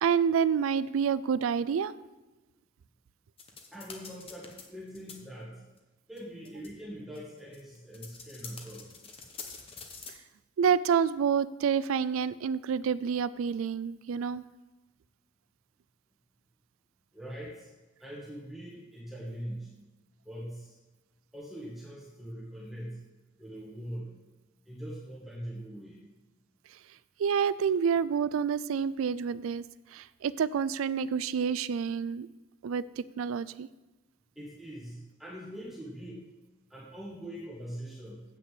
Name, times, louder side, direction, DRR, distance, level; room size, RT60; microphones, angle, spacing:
voice 1, 0.0-1.9 10.6-14.4 27.2-29.6 29.9-32.3 32.6-32.8 33.2-33.7, right 7 dB, 90° right, 17 dB, 0.4 m, -28 dB
sound 1, 3.4-4.6 4.9-5.1 5.8-5.9 6.2-6.3 6.5-6.7 7.2-10.1, left 5 dB, 30° left, 1.1 m, -45 dB
voice 2, 3.7-5.6 6.1-8.9 17.1-17.7 18.0-19.7 20.2-20.8 21.3-23.0 23.4-24.2 24.7-26.0 34.3-36.3 36.7-38.2, equal, ahead, -6 dB, 1.5 m, -42 dB
7.7 x 6.6 x 7.6 m, 1.1 s
head